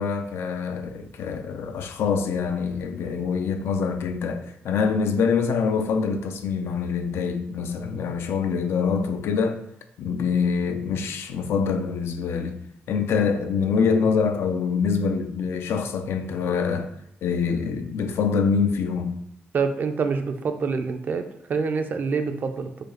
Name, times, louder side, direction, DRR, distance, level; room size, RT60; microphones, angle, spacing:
voice 1, 0.0-9.6 10.0-12.6 12.9-16.9 17.2-19.2, left 5 dB, 80° left, 0.5 m, -25 dB
voice 2, 19.5-22.7, right 5 dB, 45° right, 0.5 m, -26 dB
5.0 x 2.4 x 4.4 m
cardioid pair, 125°, 4 cm